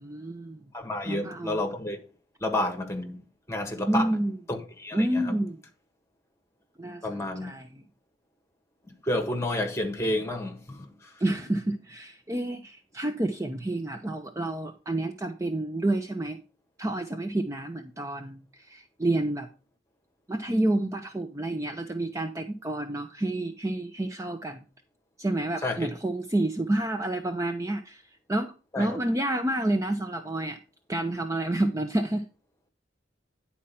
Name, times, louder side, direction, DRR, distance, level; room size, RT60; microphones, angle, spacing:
voice 1, 0.0-0.6 1.0-1.6 3.8-4.4 4.9-5.6 6.8-7.8 11.2-16.4 16.8-19.5 20.3-24.6 25.2-28.0 28.3-30.6 30.9-32.2, right 1 dB, 15° right, 0.6 m, -29 dB
voice 2, 0.7-2.0 2.4-3.2 3.5-4.1 4.5-5.3 7.0-7.5 9.0-11.1 25.6-25.9 28.7-29.0, left 1 dB, 15° left, 1.4 m, -30 dB
10.0 x 4.3 x 5.6 m
head